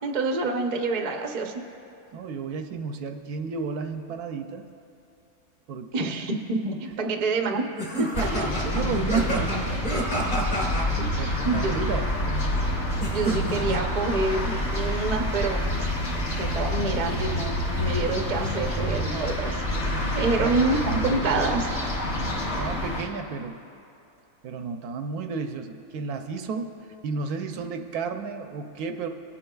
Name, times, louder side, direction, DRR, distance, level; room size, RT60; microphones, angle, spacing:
voice 1, 0.0-1.5 5.9-7.7 8.0-8.3 11.0-11.9 13.1-15.9 16.4-19.6 20.1-21.7, right 3 dB, 45° right, 3 dB, 0.5 m, -27 dB
voice 2, 2.1-4.6 5.7-6.1 8.3-9.8 10.9-12.1 19.9-20.5 22.4-23.6 24.4-26.7 27.0-29.1, right 5 dB, 75° right, 6 dB, 1.1 m, -32 dB
sound 1, 7.8-10.8 13.0-13.8, right 1 dB, 25° left, 1.3 m, -29 dB
sound 2, 8.1-23.0, left 1 dB, 40° left, 1.5 m, -27 dB
22.0 x 8.7 x 2.3 m, 2.8 s
omnidirectional pair, 1.7 m